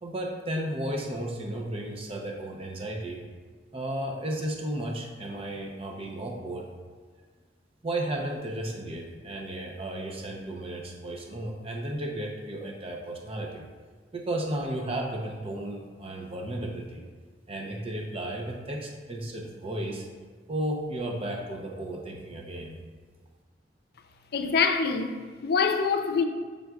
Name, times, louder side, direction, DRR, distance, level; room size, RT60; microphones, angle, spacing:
voice 1, 0.0-3.2 3.7-6.7 7.8-13.7 14.1-17.0 17.5-20.1 20.5-22.8, right 1 dB, 35° right, 0.6 m, -34 dB
voice 2, 24.3-26.3, left 5 dB, 60° left, 0.5 m, -25 dB
7.7 x 5.2 x 2.3 m
head